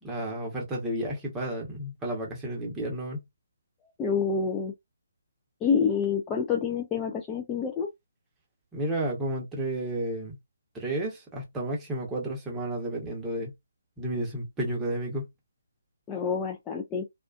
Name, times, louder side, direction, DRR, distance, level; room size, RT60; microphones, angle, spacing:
voice 1, 0.0-3.2 8.7-10.4 10.7-13.5 14.0-15.3, right 1 dB, 10° right, 0.9 m, -32 dB
voice 2, 4.0-4.7 5.6-7.9 16.1-17.0, left 6 dB, 15° left, 0.3 m, -27 dB
2.3 x 2.3 x 2.4 m
figure-of-eight pair, 145°, 0 cm